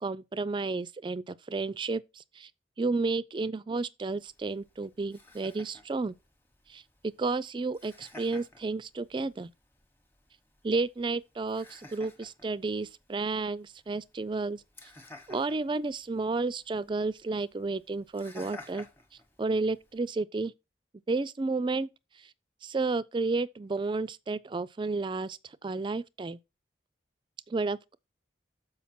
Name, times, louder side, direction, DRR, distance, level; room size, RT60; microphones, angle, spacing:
voice 1, 0.0-2.5 2.8-6.2 6.7-6.8 7.2-9.5 10.6-14.6 15.3-18.9 19.4-20.5 21.1-21.9 22.6-26.4 27.5-28.0, right 3 dB, 25° right, 0.3 m, -32 dB
Laughter, 4.1-20.1, left 2 dB, 10° left, 0.9 m, -54 dB
7.1 x 5.1 x 4.2 m
head